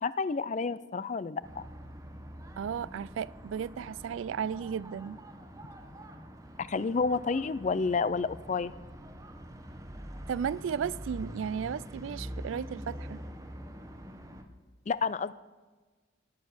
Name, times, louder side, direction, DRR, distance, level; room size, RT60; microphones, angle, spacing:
voice 1, 0.0-1.6 6.6-8.7 14.9-15.3, left 4 dB, 35° left, 0.4 m, -30 dB
sound 1, 1.4-14.4, equal, 15° right, 1.0 m, -45 dB
voice 2, 2.6-5.2 10.3-13.2, right 7 dB, 70° right, 0.3 m, -34 dB
18.0 x 7.3 x 6.4 m
head